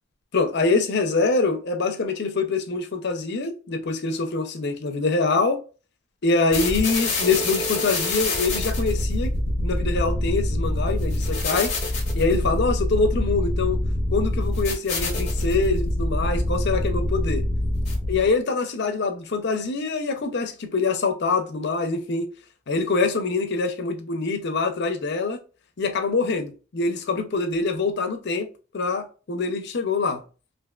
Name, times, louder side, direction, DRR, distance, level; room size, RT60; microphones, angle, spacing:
voice 1, 0.3-5.6 6.2-9.3 9.6-11.7 12.1-13.8 14.1-17.4 18.1-22.3 22.7-25.4 25.8-28.5 28.7-30.2, left 3 dB, 60° left, 0.6 m, -24 dB
sound 1, 6.5-18.3, left 1 dB, 40° left, 0.9 m, -25 dB
3.3 x 2.6 x 2.3 m
head